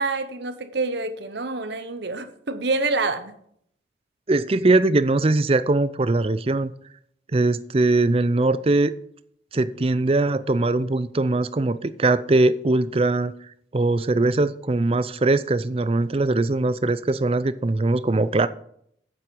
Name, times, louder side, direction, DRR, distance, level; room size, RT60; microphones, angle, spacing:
voice 1, 0.0-3.3, right 3 dB, 60° right, 1.0 m, -27 dB
voice 2, 4.3-6.7 7.3-8.9 9.5-13.3 13.7-18.5, right 2 dB, 30° right, 0.4 m, -21 dB
8.7 x 7.7 x 5.3 m
head